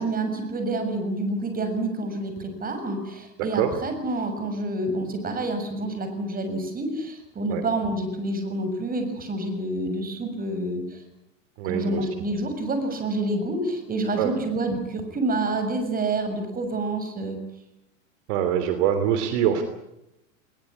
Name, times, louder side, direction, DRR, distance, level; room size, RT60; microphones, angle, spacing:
voice 1, 0.0-11.0 11.6-17.4, right 2 dB, 20° right, 7 dB, 6.6 m, -28 dB
voice 2, 11.6-12.0 14.2-14.3 18.3-19.6, right 10 dB, 55° right, 9 dB, 3.1 m, -23 dB
21.0 x 21.0 x 9.9 m, 0.87 s
hypercardioid pair, 120°, 40 cm